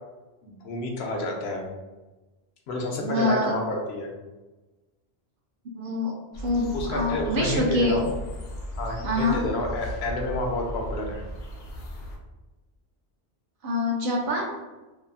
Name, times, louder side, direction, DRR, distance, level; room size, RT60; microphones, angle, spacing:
voice 1, 0.4-1.7 2.7-4.1 6.7-8.1 8.8-11.2, left 2 dB, 85° left, 0 dB, 0.9 m, -29 dB
voice 2, 3.0-3.5 5.8-8.0 9.0-9.4 13.6-14.6, left 1 dB, 60° right, -1 dB, 0.7 m, -25 dB
sound 1, 6.3-12.2, equal, 55° left, 0.6 m, -36 dB
2.6 x 2.4 x 2.5 m, 1.2 s
omnidirectional pair, 1.1 m